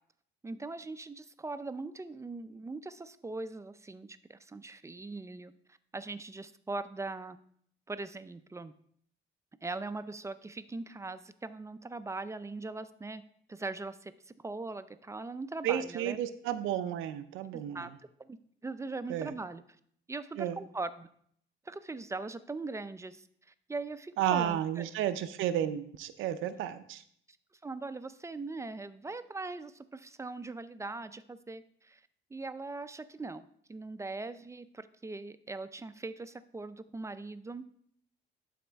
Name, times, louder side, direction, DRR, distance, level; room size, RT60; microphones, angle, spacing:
voice 1, 0.4-5.5 5.9-7.4 7.9-8.7 9.6-13.2 13.5-16.2 17.5-17.9 18.2-18.4 18.6-19.6 20.1-21.1 21.7-23.3 23.7-24.9 27.6-32.0 32.3-37.7, right 3 dB, 15° right, 13 dB, 0.4 m, -40 dB
voice 2, 15.6-17.8 19.1-19.3 20.4-20.6 24.2-27.0, right 11 dB, 90° right, 12 dB, 0.5 m, -32 dB
11.0 x 4.2 x 3.4 m, 0.65 s
cardioid pair, 90°, 20 cm